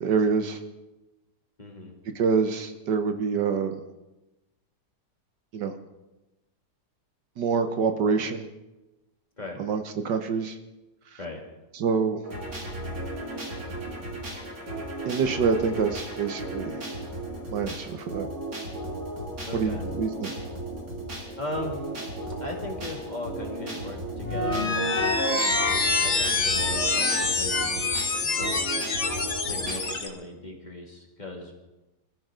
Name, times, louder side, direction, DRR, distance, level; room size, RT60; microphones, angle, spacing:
voice 1, 0.0-0.6 2.1-3.8 5.5-5.7 7.4-8.4 9.6-10.6 11.7-12.2 15.0-16.8 17.5-18.3 19.5-20.3, right 5 dB, 70° right, 7 dB, 1.6 m, -26 dB
voice 2, 1.6-1.9 9.4-9.6 11.2-11.4 19.4-19.9 21.4-21.8 22.4-28.7 29.4-31.5, left 2 dB, 25° left, 0 dB, 2.5 m, -38 dB
sound 1, 12.2-30.0, right 1 dB, 55° right, 3.9 m, -35 dB
sound 2, 24.2-30.1, left 3 dB, 40° left, 1.7 m, -26 dB
26.5 x 14.0 x 3.7 m, 1.0 s
omnidirectional pair, 1.9 m